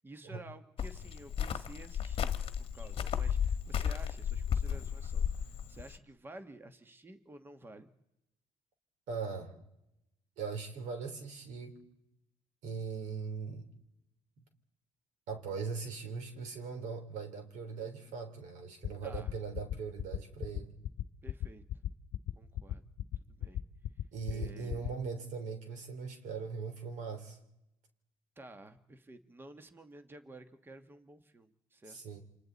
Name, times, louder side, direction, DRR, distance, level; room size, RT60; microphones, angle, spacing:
voice 1, 0.0-2.3 2.6-7.9 19.0-19.3 21.2-21.6 22.4-22.8 23.3-23.6 24.2-24.9 28.4-32.0, right 2 dB, 15° right, 9 dB, 1.3 m, -52 dB
Cricket, 0.8-6.0, left 8 dB, 45° left, 1.3 m, -34 dB
voice 2, 9.1-9.6 10.4-11.8 12.6-13.7 15.3-20.7 24.1-27.4 31.9-32.2, right 5 dB, 75° right, 6 dB, 3.6 m, -40 dB
sound 1, 18.8-24.9, left 11 dB, 60° left, 1.0 m, -35 dB
29.0 x 26.0 x 4.1 m, 0.87 s
cardioid pair, 115°, 13 cm